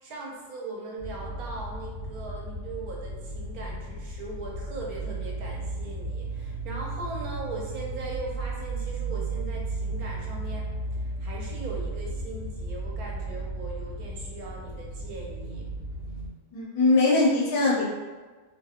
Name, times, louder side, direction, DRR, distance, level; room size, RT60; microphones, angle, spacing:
voice 1, 0.0-10.7 11.0-15.7, right 2 dB, 85° right, -2 dB, 1.1 m, -39 dB
sound 1, 1.0-16.3, right 2 dB, 65° left, 1.1 m, -34 dB
voice 2, 16.5-17.8, left 3 dB, 90° left, -5 dB, 1.1 m, -21 dB
2.9 x 2.7 x 2.4 m, 1.3 s
omnidirectional pair, 1.6 m